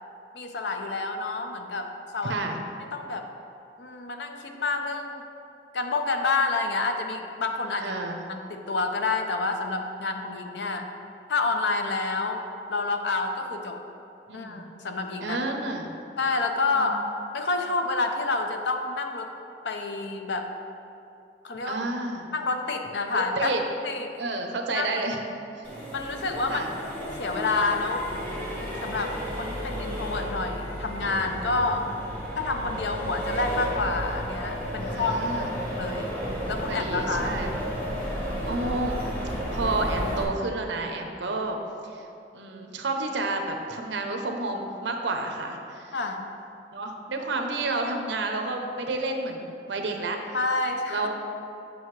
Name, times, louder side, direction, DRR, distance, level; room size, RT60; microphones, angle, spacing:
voice 1, 0.3-2.4 2.8-3.3 3.8-5.2 5.7-7.9 8.3-10.9 11.3-12.4 12.7-13.8 14.3-15.4 16.2-17.0 17.3-19.3 19.6-20.5 21.4-21.8 22.3-23.5 23.8-24.2 24.7-24.9 25.9-26.6 27.2-28.1 28.8-31.9 32.4-35.5 35.8-36.2 36.5-37.4 45.9-46.3 50.3-51.1, left 3 dB, 75° left, 5 dB, 0.6 m, -28 dB
voice 2, 2.2-2.6 7.8-8.3 14.3-14.6 15.2-15.9 16.7-16.9 21.6-22.3 23.1-23.6 24.2-25.2 26.5-26.7 34.8-35.5 36.7-37.5 38.4-41.6 41.8-42.1 42.3-46.0 46.7-50.2 50.9-51.1, right 2 dB, 80° right, 3 dB, 0.7 m, -30 dB
Accelerating revving vroom, 25.6-40.2, equal, 10° left, 1.1 m, -33 dB
7.8 x 5.9 x 3.2 m, 2.7 s
head